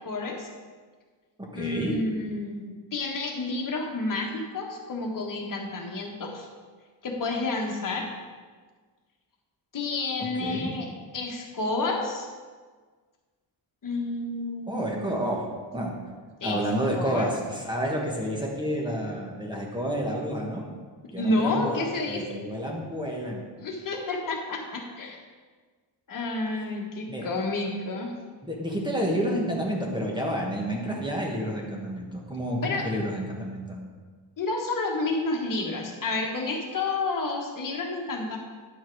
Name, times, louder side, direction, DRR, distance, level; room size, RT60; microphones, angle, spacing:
voice 1, 0.0-0.5 1.5-6.5 7.0-8.1 9.7-10.9 11.1-12.3 13.8-15.3 16.4-16.6 16.9-17.3 21.2-22.2 23.6-25.2 26.1-28.1 32.6-32.9 34.4-38.4, left 2 dB, 45° left, 1 dB, 1.4 m, -30 dB
voice 2, 1.5-2.0 10.4-10.7 14.7-15.4 15.7-15.9 16.4-20.6 21.1-23.4 27.1-27.3 28.4-33.8, equal, 10° right, -1 dB, 1.3 m, -29 dB
10.0 x 5.6 x 4.6 m, 1.5 s
wide cardioid pair, 170°, 45 cm